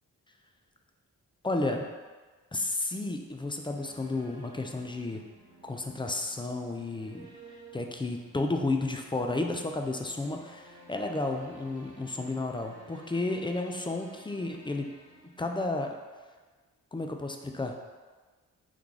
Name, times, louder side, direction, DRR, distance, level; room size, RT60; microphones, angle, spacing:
voice 1, 1.4-1.9 2.5-5.2 5.6-7.3 7.7-14.9 15.4-15.9 16.9-17.7, left 2 dB, 15° left, 3 dB, 0.3 m, -32 dB
sound 1, 3.2-16.1, right 2 dB, 75° right, 0.9 m, -54 dB
3.7 x 2.3 x 3.2 m, 1.4 s
supercardioid pair, 40°, 38 cm